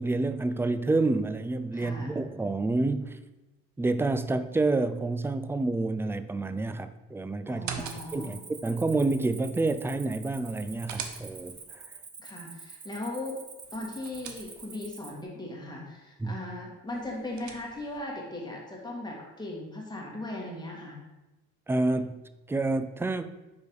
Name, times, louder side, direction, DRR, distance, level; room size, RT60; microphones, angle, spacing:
voice 1, 0.0-3.2 3.8-7.7 8.1-11.8 16.2-16.4 21.7-22.2 22.5-23.3, right 2 dB, 10° right, 0.3 m, -28 dB
voice 2, 1.7-2.2 7.5-8.4 12.2-13.4 13.7-21.1, left 1 dB, 15° left, 1.8 m, -38 dB
sound 1, 7.5-8.4 10.4-11.7 13.6-14.9 16.9-18.0, right 7 dB, 70° right, 0.8 m, -42 dB
Cricket, 7.8-15.2, right 4 dB, 35° right, 0.8 m, -47 dB
5.1 x 4.6 x 4.7 m
cardioid pair, 90°, 30 cm